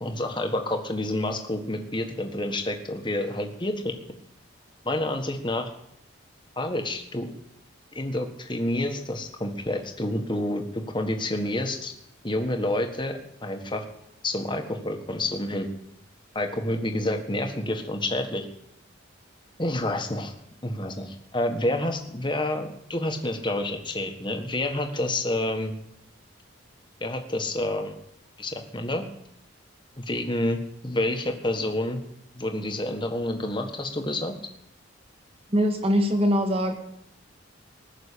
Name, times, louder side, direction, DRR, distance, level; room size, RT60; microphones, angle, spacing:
voice 1, 0.0-4.0 4.8-5.7 6.6-7.3 7.9-11.9 12.2-13.8 14.2-15.7 16.3-18.5 19.6-20.3 20.6-25.7 27.0-28.0 28.4-29.0 30.0-30.6 30.8-32.0 32.3-34.3, left 1 dB, 25° left, 5 dB, 1.5 m, -28 dB
voice 2, 35.5-36.7, equal, 30° right, 5 dB, 1.9 m, -22 dB
19.5 x 6.7 x 8.5 m, 0.77 s
head